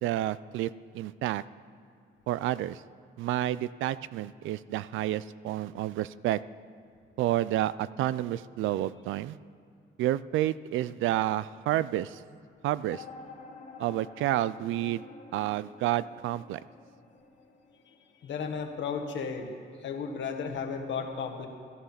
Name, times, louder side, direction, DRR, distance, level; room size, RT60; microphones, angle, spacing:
voice 1, 0.0-1.4 2.3-2.8 3.2-6.4 7.2-9.4 10.0-12.2 12.6-13.0 13.8-15.1 15.3-16.6, right 14 dB, 80° right, 17 dB, 0.4 m, -30 dB
sound 1, 12.9-18.5, left 4 dB, 40° left, 1.9 m, -49 dB
voice 2, 18.2-21.5, left 5 dB, 70° left, 4 dB, 1.6 m, -34 dB
14.5 x 11.5 x 5.8 m, 2.4 s
cardioid pair, 90°, 20 cm